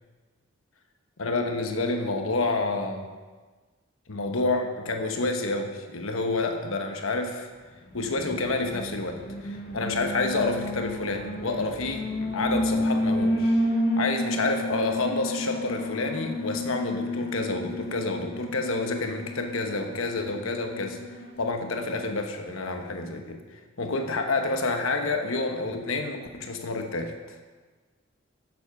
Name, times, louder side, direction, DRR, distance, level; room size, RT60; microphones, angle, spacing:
voice 1, 1.2-3.1 4.1-7.5 7.9-13.5 14.0-21.0 21.4-23.4 23.8-27.4, left 3 dB, 85° left, 5 dB, 1.1 m, -29 dB
Alarm, 7.9-21.3, left 1 dB, 50° left, 2.1 m, -31 dB
10.0 x 7.2 x 6.0 m, 1.4 s
head